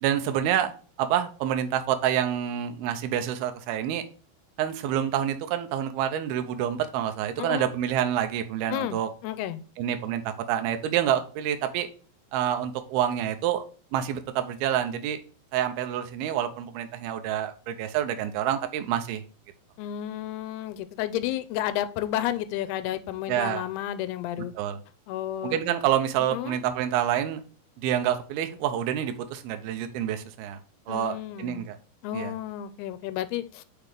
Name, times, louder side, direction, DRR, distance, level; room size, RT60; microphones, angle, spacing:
voice 1, 0.0-4.0 4.6-9.1 9.8-10.2 10.5-11.9 12.3-13.6 13.9-15.2 15.5-19.2 23.3-23.6 24.6-24.8 25.4-27.4 27.8-30.6 30.9-31.8 32.1-32.3, right 10 dB, 85° right, 7 dB, 2.6 m, -27 dB
voice 2, 7.4-7.7 8.7-9.6 19.8-24.5 25.1-25.8 26.3-26.6 30.9-31.7 32.0-33.6, left 12 dB, 90° left, 12 dB, 2.6 m, -32 dB
7.2 x 4.5 x 3.3 m, 0.40 s
omnidirectional pair, 4.5 m